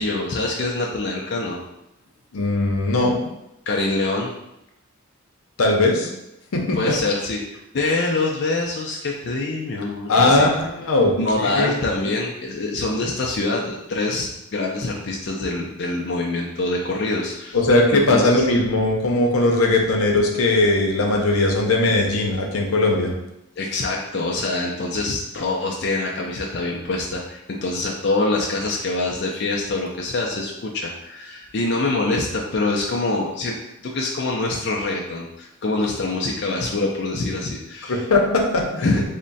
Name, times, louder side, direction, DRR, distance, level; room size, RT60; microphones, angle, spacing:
voice 1, 0.0-1.6 3.7-4.3 6.8-7.4 7.7-10.5 11.2-17.6 17.9-18.4 23.6-33.6 33.8-38.0 38.8-39.1, left 2 dB, 50° left, -2 dB, 0.4 m, -25 dB
voice 2, 2.3-3.2 5.6-6.1 6.5-6.9 10.1-11.7 17.5-23.1 37.9-39.1, left 2 dB, 90° left, 1 dB, 0.7 m, -19 dB
3.5 x 2.1 x 4.0 m, 0.85 s
head